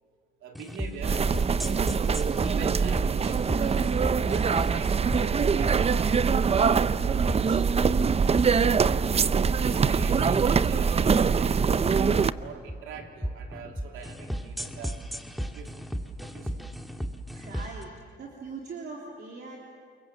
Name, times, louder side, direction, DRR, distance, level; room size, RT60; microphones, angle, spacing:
voice 1, 0.4-1.9 2.4-8.5 8.8-9.1 9.5-15.0 15.5-15.9 16.2-16.6, right 5 dB, 80° right, 2 dB, 3.3 m, -44 dB
sound 1, 0.5-17.8, equal, ahead, 1.8 m, -36 dB
sound 2, 1.0-12.3, right 6 dB, 30° right, 0.6 m, -23 dB
voice 2, 17.3-19.6, right 4 dB, 55° right, -2 dB, 3.6 m, -41 dB
28.5 x 23.0 x 7.5 m, 2.1 s
cardioid pair, 90°, 20 cm